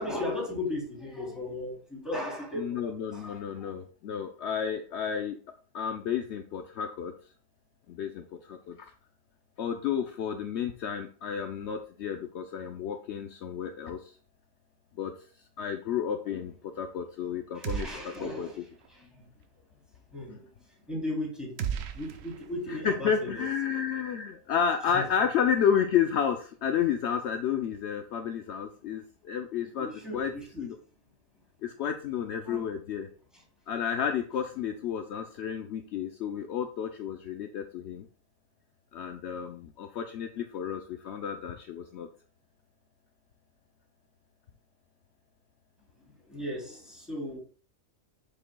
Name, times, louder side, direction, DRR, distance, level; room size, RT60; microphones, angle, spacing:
voice 1, 0.0-3.7 16.3-16.4 17.5-19.3 20.1-23.4 24.9-25.1 29.8-30.7 32.4-32.8 33.3-33.4 46.0-47.4, left 1 dB, ahead, -4 dB, 2.9 m, -37 dB
voice 2, 2.6-5.4 5.7-7.1 7.9-8.9 9.6-14.1 15.0-15.1 15.6-17.9 18.2-18.6 22.7-29.9 30.1-30.3 30.6-30.8 31.6-33.1 33.7-38.1 38.9-42.1, left 8 dB, 65° left, 6 dB, 0.8 m, -31 dB
Rifle Gunshot Tail, 17.6-18.5 18.8-18.9 21.6-22.9, right 8 dB, 90° right, 1.0 m, -36 dB
7.4 x 6.6 x 2.2 m, 0.42 s
omnidirectional pair, 1.3 m